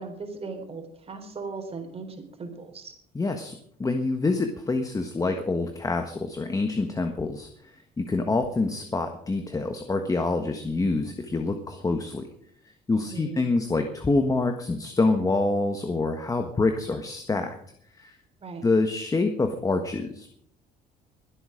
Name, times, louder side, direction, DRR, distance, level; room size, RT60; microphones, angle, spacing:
voice 1, 0.0-2.9 12.9-13.4 18.4-18.6, right 4 dB, 35° right, 5 dB, 3.8 m, -38 dB
voice 2, 3.1-3.5 3.8-7.5 8.0-12.3 12.9-17.5 18.0-18.1 18.6-20.4, left 3 dB, 20° left, 5 dB, 1.5 m, -26 dB
22.5 x 8.1 x 5.1 m, 0.64 s
cardioid pair, 110°, 17 cm